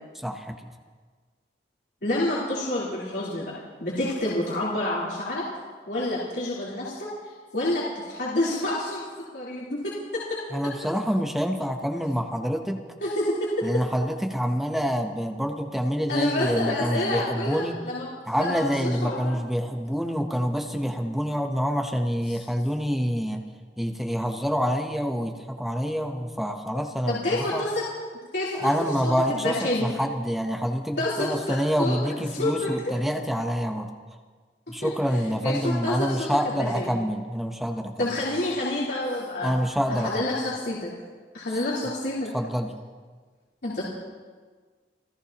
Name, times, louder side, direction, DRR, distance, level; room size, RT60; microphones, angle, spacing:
voice 1, 0.1-0.7 10.5-12.8 13.6-17.8 18.3-23.5 23.8-27.7 28.5-33.9 34.7-38.1 39.4-40.3 42.3-42.7, equal, ahead, 3 dB, 0.9 m, -27 dB
voice 2, 2.0-3.5 3.8-5.4 5.9-7.1 7.5-9.0 9.3-10.4 13.0-13.6 16.1-18.1 18.3-19.4 22.3-22.4 27.1-27.8 28.3-28.7 29.3-29.9 31.0-32.9 34.8-34.9 35.4-36.3 36.6-37.0 38.0-39.5 39.9-40.9 41.3-42.3 43.6-43.8, left 1 dB, 70° left, -8 dB, 3.7 m, -28 dB
30.0 x 15.5 x 3.0 m, 1.5 s
head